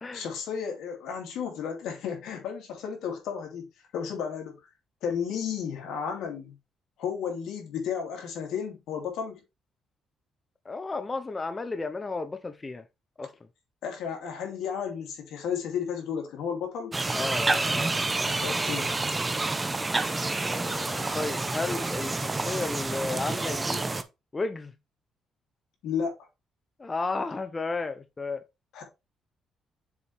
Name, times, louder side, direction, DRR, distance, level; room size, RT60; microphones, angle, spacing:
voice 1, 0.1-3.7 3.9-4.6 5.0-6.6 7.0-9.4 13.8-16.9 18.4-18.9 25.8-26.1 28.7-28.8, left 7 dB, 85° left, 2.6 m, -33 dB
voice 2, 10.6-12.8 13.2-13.3 17.1-18.4 20.3-23.8 24.3-24.7 26.8-28.4, left 3 dB, 25° left, 0.6 m, -33 dB
sound 1, 16.9-24.0, right 3 dB, 20° right, 0.8 m, -28 dB
6.9 x 4.4 x 3.4 m
cardioid pair, 90°, 0 cm